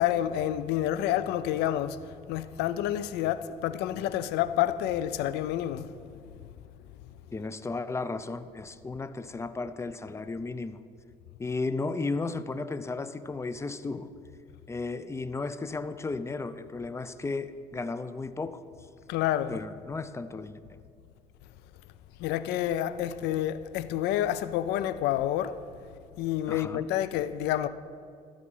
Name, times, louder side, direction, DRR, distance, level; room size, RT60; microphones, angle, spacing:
voice 1, 0.0-2.0 2.3-6.3 19.1-19.6 22.2-25.6 26.2-27.7, left 12 dB, 75° left, 0.4 m, -29 dB
voice 2, 7.3-10.8 11.4-14.1 14.7-18.6 19.5-20.6 26.5-26.8, left 3 dB, 15° left, 0.5 m, -34 dB
12.0 x 5.1 x 5.5 m
hypercardioid pair, 60°, 17 cm